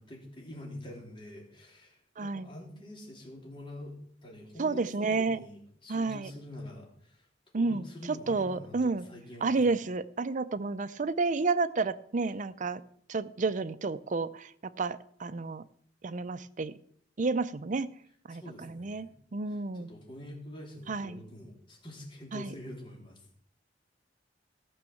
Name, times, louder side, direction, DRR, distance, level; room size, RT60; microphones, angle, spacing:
voice 1, 0.0-7.3 7.6-9.7 18.3-19.1 19.5-23.2, left 1 dB, 30° left, -1 dB, 3.6 m, -46 dB
voice 2, 2.2-2.5 4.6-5.4 5.9-6.3 7.5-9.1 9.4-12.8 13.1-14.5 14.8-15.6 16.0-16.7 17.2-17.9 18.3-19.9 20.9-21.2 22.3-22.5, right 3 dB, 45° right, 15 dB, 0.5 m, -31 dB
14.5 x 6.3 x 7.1 m, 0.64 s
head